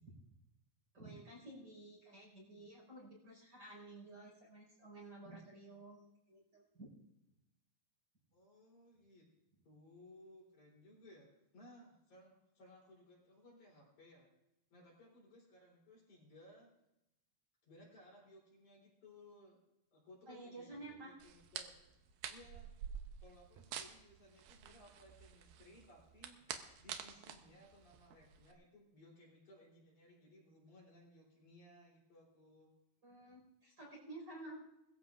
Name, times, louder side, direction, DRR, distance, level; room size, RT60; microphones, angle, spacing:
voice 1, 0.9-6.9 20.3-21.1 33.0-34.6, right 2 dB, 30° right, -4 dB, 5.6 m, -53 dB
voice 2, 8.3-9.3 9.6-14.3 14.7-16.7 17.6-19.6 19.9-21.7 22.3-22.7 23.2-26.4 26.8-32.7, left 1 dB, 55° left, -4 dB, 5.0 m, -61 dB
sound 1, 21.2-28.5, right 8 dB, 75° right, 2.5 m, -49 dB
21.5 x 14.5 x 2.5 m, 0.89 s
omnidirectional pair, 4.3 m